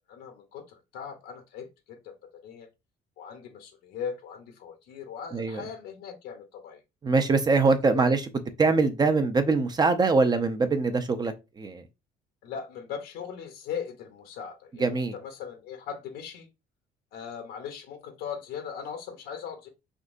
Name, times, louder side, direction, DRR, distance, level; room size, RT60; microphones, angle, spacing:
voice 1, 0.1-2.2 2.4-2.7 3.2-6.8 7.6-8.0 12.4-16.5 17.1-19.7, left 7 dB, 85° left, 0.8 m, -39 dB
voice 2, 5.3-5.6 7.0-8.3 8.6-11.8 14.8-15.1, right 3 dB, 25° right, 0.5 m, -23 dB
3.6 x 2.7 x 2.5 m
cardioid pair, 110°, 17 cm